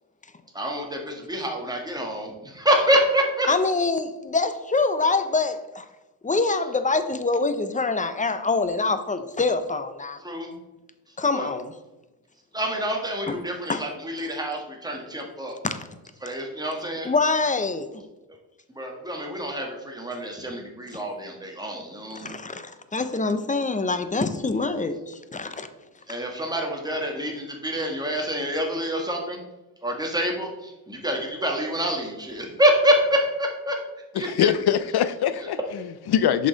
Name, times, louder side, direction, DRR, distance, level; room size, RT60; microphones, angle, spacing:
voice 1, 0.5-3.5 10.2-10.5 11.3-11.5 12.5-15.6 16.2-17.1 18.7-22.4 26.1-29.4 29.8-33.8 34.1-34.5 35.4-35.5, equal, 10° right, 1 dB, 1.5 m, -26 dB
voice 2, 3.5-5.9 6.2-10.2 11.2-11.7 13.3-13.4 13.7-13.8 15.6-15.9 17.0-18.0 22.1-25.7, left 3 dB, 20° left, 10 dB, 0.5 m, -25 dB
voice 3, 34.1-36.5, left 9 dB, 65° left, 13 dB, 0.5 m, -23 dB
7.2 x 5.4 x 3.9 m, 1.0 s
cardioid pair, 100°, 41 cm